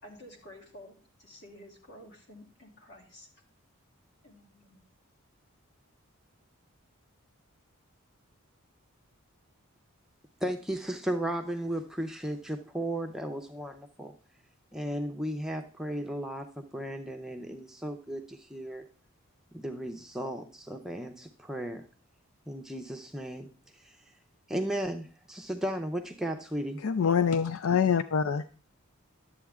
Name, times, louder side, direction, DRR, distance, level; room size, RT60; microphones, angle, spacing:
voice 1, 0.0-3.3 4.2-4.8, left 1 dB, 50° left, -1 dB, 2.8 m, -51 dB
voice 2, 10.4-14.1 14.7-18.8 19.5-21.9 22.5-23.5 23.7-24.0 24.5-26.8, right 1 dB, ahead, 3 dB, 0.6 m, -35 dB
voice 3, 26.8-28.6, left 7 dB, 75° left, 11 dB, 0.4 m, -25 dB
11.5 x 8.1 x 3.6 m, 0.37 s
head